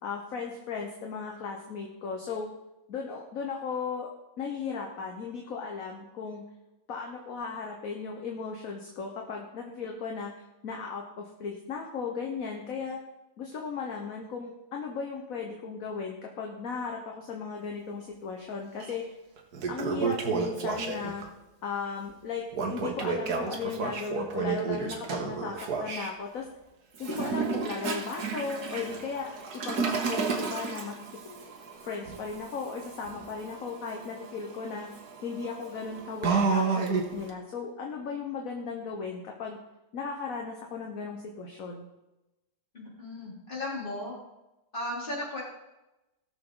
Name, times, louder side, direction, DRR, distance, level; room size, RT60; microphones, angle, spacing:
voice 1, 0.0-2.5 2.9-4.1 4.4-6.4 6.9-13.0 13.4-19.0 19.7-21.2 21.6-26.5 27.0-30.9 31.2-31.4 31.8-34.9 35.2-39.6 39.9-41.9, left 5 dB, 55° left, 1 dB, 1.5 m, -36 dB
Toilet flush, 18.8-18.9 19.4-21.3 22.5-26.1 27.0-37.3, right 5 dB, 60° right, 1.8 m, -32 dB
voice 2, 42.7-44.1 44.7-45.4, left 1 dB, 30° left, -5 dB, 3.7 m, -35 dB
18.0 x 6.8 x 3.9 m, 0.97 s
omnidirectional pair, 1.9 m